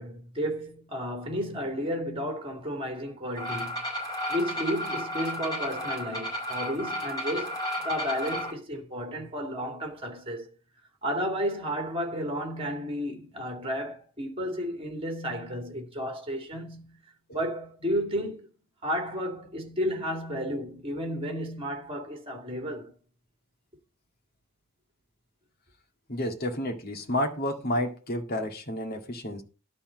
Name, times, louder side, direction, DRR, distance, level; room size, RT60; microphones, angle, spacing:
voice 1, 0.0-3.8 4.3-10.5 11.0-17.0 17.3-18.5 18.8-22.9, equal, 25° right, 2.5 m, -32 dB
sound 1, 3.4-8.5, equal, 15° left, 4.8 m, -33 dB
voice 2, 26.1-29.4, left 1 dB, 45° left, 1.9 m, -30 dB
11.5 x 4.2 x 7.5 m
head